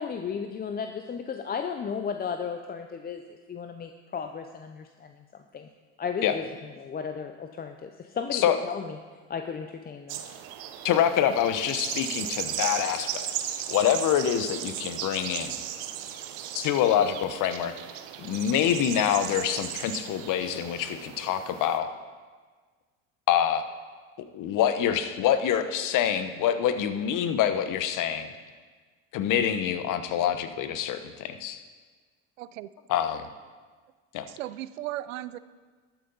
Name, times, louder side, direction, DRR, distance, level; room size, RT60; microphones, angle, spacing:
voice 1, 0.0-5.7 6.0-9.0 9.3-10.2, left 6 dB, 25° left, 6 dB, 0.6 m, -35 dB
sound 1, 10.1-21.8, right 10 dB, 65° right, 1.0 m, -36 dB
voice 2, 10.8-13.3 13.7-15.6 16.5-17.7 18.2-21.9 23.3-23.7 24.3-28.3 29.1-31.6 32.9-33.2 34.1-34.2, left 9 dB, 55° left, 9 dB, 1.0 m, -26 dB
voice 3, 32.4-32.7 34.3-35.4, right 15 dB, 90° right, 16 dB, 0.5 m, -36 dB
12.5 x 8.8 x 4.0 m, 1.5 s
hypercardioid pair, 80°, 38 cm